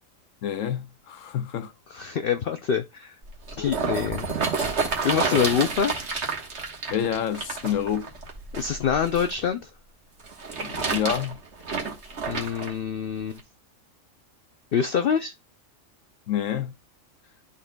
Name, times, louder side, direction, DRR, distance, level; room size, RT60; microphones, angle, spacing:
voice 1, 0.4-1.7 3.6-3.8 5.3-5.4 6.9-8.1 10.6-11.4 16.3-16.7, left 9 dB, 75° left, 1.2 m, -28 dB
voice 2, 1.9-3.2 3.6-4.4 5.0-5.9 8.5-9.7 12.3-13.4 14.7-15.3, left 7 dB, 60° left, 0.6 m, -25 dB
sound 1, 3.2-9.3 10.2-12.7 13.4-13.5, right 4 dB, 55° right, 1.6 m, -30 dB
11.5 x 4.1 x 2.2 m
omnidirectional pair, 1.4 m